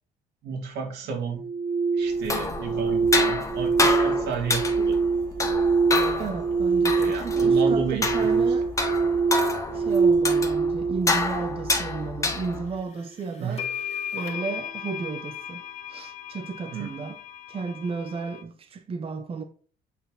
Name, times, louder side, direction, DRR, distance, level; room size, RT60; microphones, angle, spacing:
voice 1, 0.4-1.4 1.9-5.0 6.9-8.4 9.7-9.8 13.4-13.7 16.7-17.0, right 6 dB, 80° right, 2.2 m, -32 dB
sound 1, 1.3-12.4, right 4 dB, 55° right, 1.0 m, -24 dB
sound 2, 2.1-12.8, left 3 dB, 20° left, 1.3 m, -29 dB
voice 2, 6.2-8.7 9.7-13.7 14.1-15.6 15.9-17.2 17.5-19.4, right 4 dB, 35° right, 0.7 m, -33 dB
sound 3, 13.0-13.1 13.6-18.4, left 9 dB, 40° left, 1.9 m, -36 dB
8.2 x 4.5 x 3.8 m
cardioid pair, 110°, 17 cm